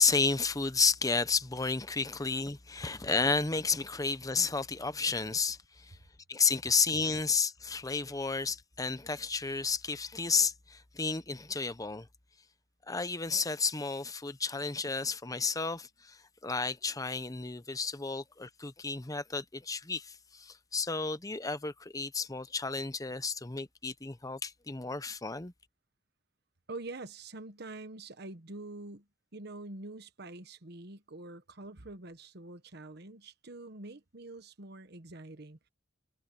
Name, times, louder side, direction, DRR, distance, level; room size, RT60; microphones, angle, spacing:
voice 1, 0.0-6.0 6.3-12.1 12.9-25.5, left 4 dB, 20° left, 0.9 m, -32 dB
voice 2, 26.7-29.1 29.3-35.7, right 2 dB, 60° right, 1.3 m, -45 dB
head